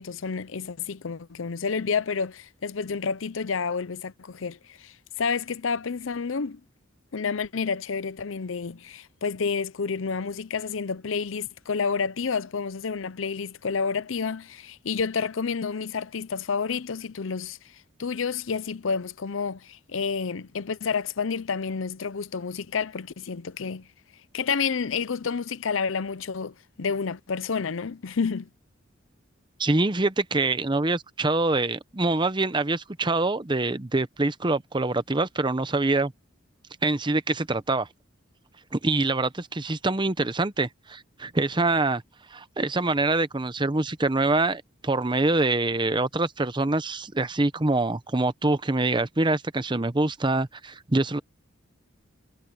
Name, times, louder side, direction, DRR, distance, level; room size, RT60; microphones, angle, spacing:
voice 1, 0.0-6.6 7.1-17.6 18.0-23.9 24.3-28.5, left 5 dB, 80° left, 0.6 m, -29 dB
voice 2, 29.6-36.1 36.8-37.9 38.7-42.0 42.3-51.2, right 2 dB, 25° right, 0.8 m, -25 dB
head